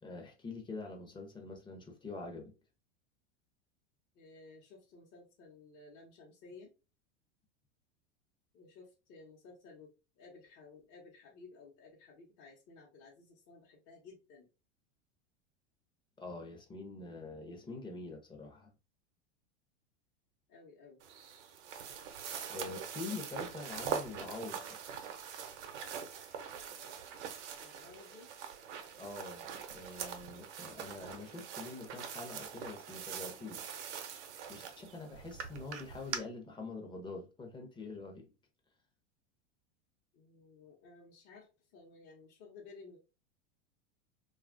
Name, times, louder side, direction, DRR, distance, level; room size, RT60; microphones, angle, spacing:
voice 1, 0.0-2.5 16.2-18.7 22.5-24.6 29.0-33.7 34.5-38.3, left 3 dB, 15° left, 0.6 m, -45 dB
voice 2, 4.1-6.7 8.5-14.5 20.5-21.0 23.1-23.4 27.6-28.3 40.1-43.0, left 4 dB, 45° left, 0.9 m, -56 dB
sound 1, 21.0-36.2, right 7 dB, 80° right, 0.7 m, -43 dB
2.8 x 2.4 x 2.5 m
supercardioid pair, 115°, 35 cm